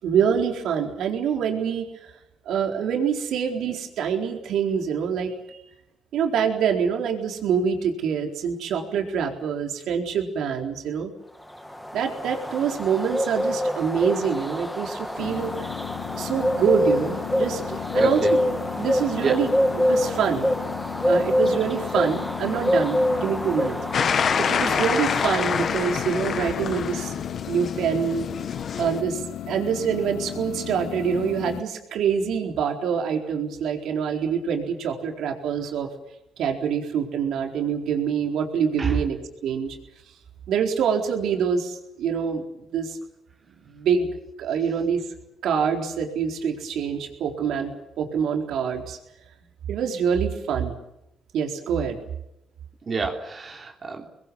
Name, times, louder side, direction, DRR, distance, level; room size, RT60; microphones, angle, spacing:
voice 1, 0.0-2.1 2.5-5.6 6.1-11.1 11.9-15.5 16.1-18.3 18.8-19.5 19.8-20.5 21.1-27.2 27.5-28.3 28.8-35.9 36.4-39.2 39.4-39.8 40.5-42.4 42.7-43.0 43.7-44.1 44.4-45.0 45.4-49.0 49.7-50.7 51.3-52.0, right 7 dB, 75° right, 3 dB, 4.2 m, -25 dB
sound 1, 11.5-26.1, equal, 5° left, 2.3 m, -26 dB
sound 2, 15.2-31.6, left 11 dB, 75° left, 1.3 m, -35 dB
voice 2, 17.9-18.3 19.2-19.4 38.8-39.0 52.8-54.1, right 4 dB, 40° right, 2 dB, 3.4 m, -28 dB
sound 3, 23.9-29.0, left 6 dB, 55° left, 1.4 m, -27 dB
26.5 x 21.5 x 7.2 m, 0.86 s
cardioid pair, 90°, 0 cm